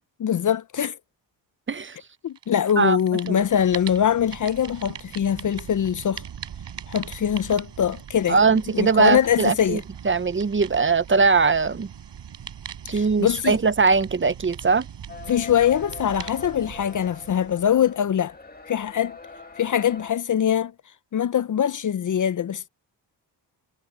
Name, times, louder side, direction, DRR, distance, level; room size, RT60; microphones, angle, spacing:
voice 1, 0.2-1.0 2.2-6.2 6.9-8.4 8.7-9.8 12.9-13.6 15.3-18.3 18.7-19.2 19.6-20.7 21.1-22.7, left 9 dB, 45° left, 0.5 m, -23 dB
sound 1, 2.4-2.7 3.0-18.0, right 8 dB, 65° right, 6.3 m, -40 dB
voice 2, 8.3-11.9 12.9-14.9, right 4 dB, 25° right, 0.7 m, -21 dB
sound 2, 15.1-20.1, left 5 dB, 20° left, 2.2 m, -42 dB
cardioid pair, 100°, 45 cm